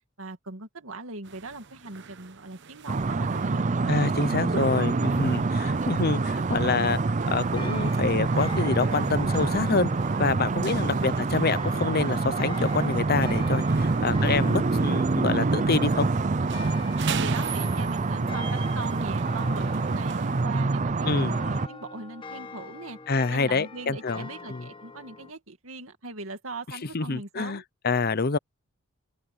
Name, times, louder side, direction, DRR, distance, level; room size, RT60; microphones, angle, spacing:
voice 1, 0.2-3.9 10.7-11.1 13.9-14.4 16.4-16.7 17.0-23.0 23.3-27.6, right 2 dB, 75° right, 2.2 m, -40 dB
sound 1, 1.2-20.4, right 5 dB, 60° right, 0.9 m, -42 dB
sound 2, 2.9-21.7, right 3 dB, 35° right, 0.5 m, -26 dB
voice 2, 3.9-7.0 7.3-9.9 10.2-16.1 21.0-21.4 23.1-24.7 26.9-28.4, left 4 dB, 45° left, 0.7 m, -27 dB
sound 3, 7.3-25.3, left 3 dB, 25° left, 1.1 m, -44 dB
head